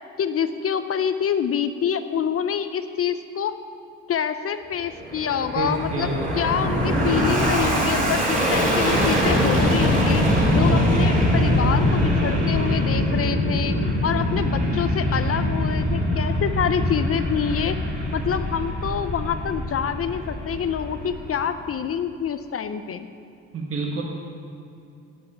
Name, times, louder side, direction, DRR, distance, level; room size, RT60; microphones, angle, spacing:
voice 1, 0.2-3.5 4.1-10.2 10.5-13.8 14.0-17.8 18.1-23.1, left 8 dB, 50° left, 10 dB, 0.6 m, -26 dB
Fixed-wing aircraft airplane, 4.8-21.5, equal, 25° right, 3.1 m, -22 dB
voice 2, 5.5-6.3 23.5-24.0, right 3 dB, 45° right, -1 dB, 1.4 m, -28 dB
8.4 x 8.0 x 8.6 m, 2.6 s
cardioid pair, 90°, 30 cm